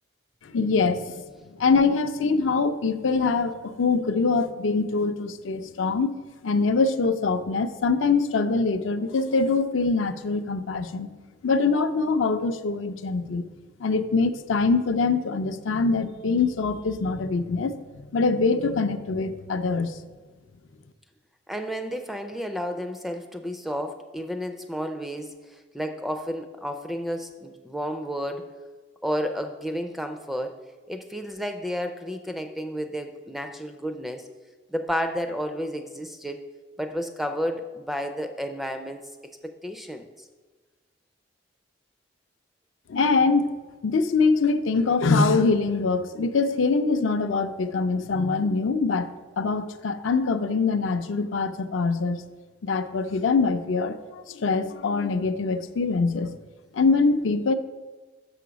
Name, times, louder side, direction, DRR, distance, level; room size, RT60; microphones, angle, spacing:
voice 1, 0.4-1.2 1.6-6.1 6.4-11.1 11.4-13.5 13.8-17.8 18.1-20.0 42.9-43.5 43.8-49.1 49.4-52.2 52.6-56.4 56.7-57.5, left 4 dB, 75° left, 9 dB, 0.5 m, -23 dB
voice 2, 21.5-28.5 29.0-30.6 30.9-34.3 34.7-36.4 36.8-39.1 39.4-40.1, equal, ahead, 6 dB, 0.3 m, -31 dB
6.7 x 5.7 x 5.1 m, 1.3 s
head